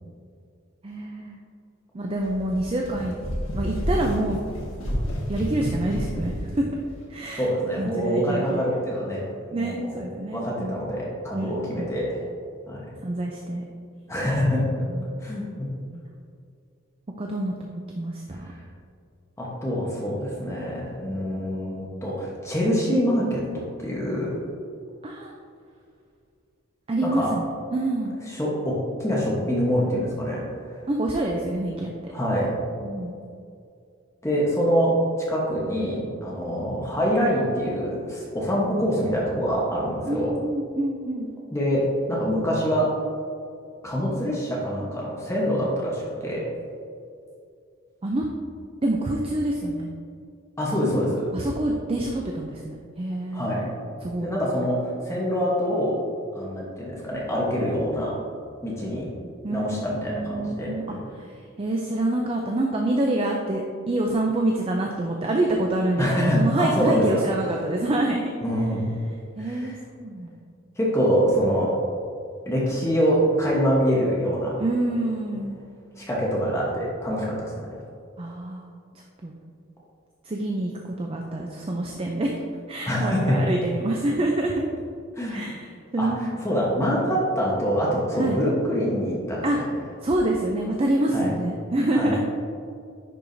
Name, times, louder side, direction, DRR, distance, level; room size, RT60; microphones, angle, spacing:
voice 1, 0.8-1.4 1.9-3.2 3.5-4.4 5.3-6.7 7.1-7.5 7.8-8.8 9.5-10.8 11.3-11.9 13.0-13.6 14.9-15.2 15.9-16.1 17.2-17.5 18.0-18.5 25.0-25.3 26.9-27.4 27.7-28.2 30.9-32.1 32.8-33.2 40.1-41.3 48.0-48.3 48.8-49.9 51.3-53.5 54.0-54.3 59.4-68.2 69.4-70.3 74.6-75.6 78.2-78.7 79.2-79.3 80.2-82.3 82.7-84.5 85.3-85.7 85.9-86.4 88.2-88.4 89.4-89.6 90.0-92.2, right 1 dB, 25° right, 0 dB, 0.4 m, -26 dB
sound 1, 2.2-6.5, equal, 70° left, 1.4 m, -30 dB
voice 2, 7.4-9.2 9.6-10.0 10.3-12.2 12.7-12.9 14.1-14.6 15.2-15.7 19.4-24.3 27.0-27.3 28.3-30.4 32.1-32.5 34.2-34.9 35.3-40.3 41.5-41.8 42.1-42.9 43.8-46.4 50.6-51.3 53.3-53.7 54.2-54.8 55.0-55.9 56.3-58.2 58.6-59.1 59.5-61.0 66.0-67.0 68.4-68.9 69.4-69.7 70.8-71.7 72.5-74.6 76.0-77.5 82.8-83.5 85.2-85.6 86.0-86.1 86.4-89.6 91.1-91.3 91.9-92.1, equal, 15° left, -5 dB, 1.0 m, -25 dB
10.5 x 4.7 x 2.6 m, 2.4 s
head